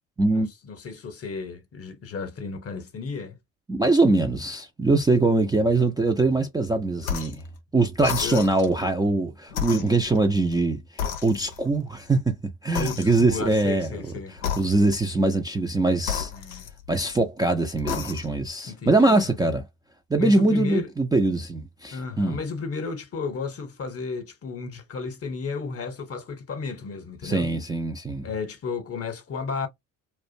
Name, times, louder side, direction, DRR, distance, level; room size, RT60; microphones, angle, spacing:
voice 1, 0.3-3.4 8.2-8.4 12.7-14.4 16.3-16.6 18.7-19.3 20.2-20.9 21.9-27.5 28.2-29.7, left 5 dB, 35° left, 0.9 m, -33 dB
voice 2, 3.7-7.4 7.7-10.8 11.2-12.3 12.6-13.9 14.6-16.3 16.9-19.6 20.1-22.4 27.2-28.3, right 2 dB, 10° right, 0.4 m, -22 dB
sound 1, 7.0-7.5 8.0-8.8 9.5-10.6 11.0-11.8 12.7-13.5 14.4-15.1 16.0-17.1 17.7-18.5, left 8 dB, 90° left, 0.6 m, -33 dB
2.4 x 2.2 x 2.5 m
hypercardioid pair, 55°, 40 cm